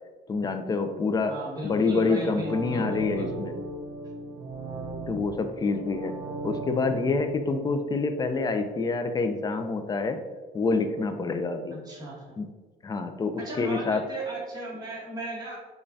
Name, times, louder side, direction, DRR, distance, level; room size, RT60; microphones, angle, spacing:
voice 1, 0.3-1.3 1.6-3.5 5.1-6.1 6.4-10.2 10.5-11.7 12.4-12.5 12.8-14.0, left 3 dB, 25° left, 7 dB, 0.4 m, -27 dB
voice 2, 1.2-3.3 11.7-12.4 13.4-15.6, right 1 dB, 25° right, -5 dB, 1.3 m, -36 dB
sound 1, 2.1-9.0 9.3-9.4, right 2 dB, 80° right, 0.6 m, -38 dB
5.2 x 2.3 x 2.6 m, 1.3 s
cardioid pair, 110°, 17 cm